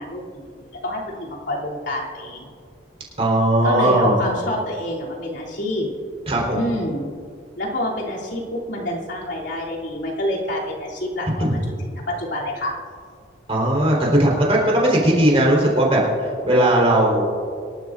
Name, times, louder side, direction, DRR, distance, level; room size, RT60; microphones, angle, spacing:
voice 1, 0.0-2.5 3.6-5.9 6.5-7.1 7.6-12.7, left 1 dB, 70° left, -5 dB, 2.9 m, -27 dB
voice 2, 3.2-4.2 6.3-6.6 11.4-11.6 13.5-16.0 16.4-17.2, right 1 dB, 30° right, -3 dB, 3.8 m, -18 dB
25.0 x 12.0 x 2.5 m, 2.2 s
head